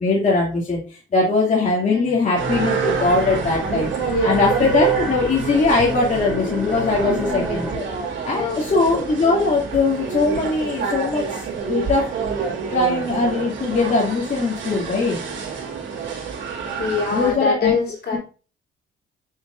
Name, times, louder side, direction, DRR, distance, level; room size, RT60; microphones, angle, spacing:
voice 1, 0.0-3.9 4.2-7.9 8.3-12.1 12.7-15.2 17.1-17.8, left 3 dB, 35° left, -4 dB, 2.6 m, -20 dB
voice 2, 1.9-2.3 4.0-4.6 7.0-7.5 8.3-9.0 16.8-18.2, left 5 dB, 55° left, 0 dB, 3.6 m, -25 dB
sound 1, 2.4-17.3, right 6 dB, 70° right, 2.4 m, -27 dB
sound 2, 3.0-8.0, right 1 dB, ahead, 3.1 m, -30 dB
8.0 x 6.5 x 2.6 m, 0.35 s
cardioid pair, 90°, 20 cm